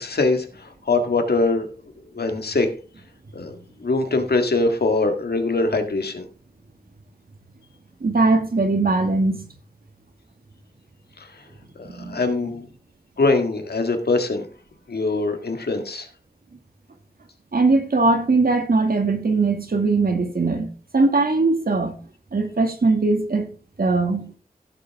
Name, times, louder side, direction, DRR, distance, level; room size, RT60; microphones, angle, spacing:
voice 1, 0.0-1.7 2.1-2.7 3.3-3.5 3.8-6.2 11.2-11.3 11.8-12.6 13.2-14.4 14.9-16.1, left 3 dB, 90° left, 1.8 m, -22 dB
voice 2, 8.0-9.4 11.8-12.2 17.5-22.0 22.3-23.5 23.8-24.4, right 3 dB, 70° right, 2.1 m, -20 dB
15.5 x 7.4 x 3.5 m
wide cardioid pair, 80°, 16 cm